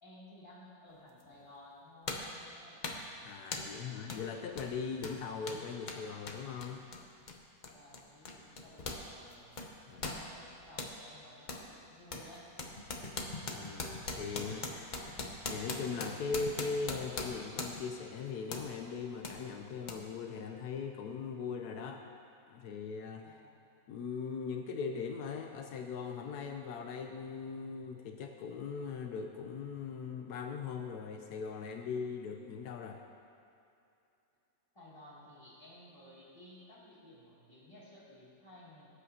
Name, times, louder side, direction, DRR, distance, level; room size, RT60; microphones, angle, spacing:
voice 1, 0.0-2.8 3.6-4.1 7.7-9.5 9.9-12.5 23.2-23.6 34.7-38.9, left 1 dB, 15° left, -9 dB, 2.6 m, -56 dB
sound 1, 1.2-1.3 2.1-2.4 2.8-3.1 3.5-3.8 4.1-4.3 4.5-9.1 9.3-11.0 11.5-11.7 12.1-18.0 18.5-18.7 19.2-19.4 19.9-20.0, left 3 dB, 40° left, 0.7 m, -41 dB
voice 2, 3.2-6.8 9.9-10.1 13.5-15.1 15.5-22.0 22.5-23.4 23.9-33.0, left 5 dB, 80° left, 4 dB, 1.2 m, -40 dB
18.0 x 8.3 x 2.8 m, 2.7 s
omnidirectional pair, 1.7 m